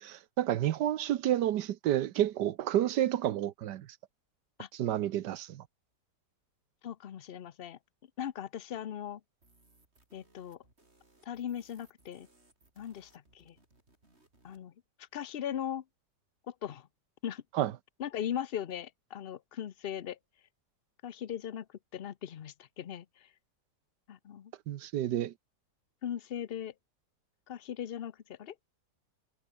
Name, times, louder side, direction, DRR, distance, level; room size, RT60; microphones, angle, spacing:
voice 1, 0.0-3.9 4.7-5.6 17.5-17.7 24.7-25.3, right 12 dB, 75° right, 1.4 m, -30 dB
voice 2, 6.8-7.8 8.2-9.2 10.1-10.6 11.3-12.3 12.8-13.5 14.4-14.7 15.1-15.8 16.5-16.9 17.2-17.4 18.0-20.2 21.0-21.7 21.9-23.3 24.1-24.5 26.0-26.7 27.5-28.5, left 10 dB, 60° left, 0.6 m, -39 dB
sound 1, 9.4-14.6, right 2 dB, 35° right, 5.6 m, -66 dB
omnidirectional pair, 1.9 m